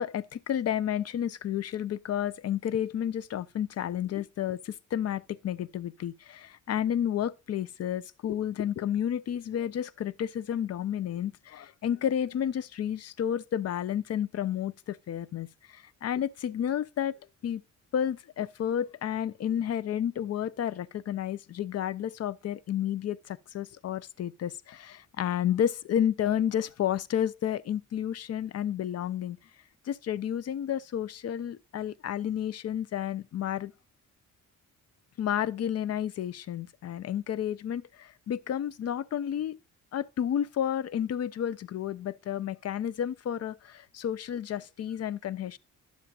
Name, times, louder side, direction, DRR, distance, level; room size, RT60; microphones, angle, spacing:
voice 1, 0.0-17.2 17.4-17.6 17.9-29.4 29.9-33.7 35.2-39.6 39.9-45.6, left 10 dB, 50° left, 0.5 m, -31 dB
10.0 x 7.3 x 2.3 m
cardioid pair, 105°, 32 cm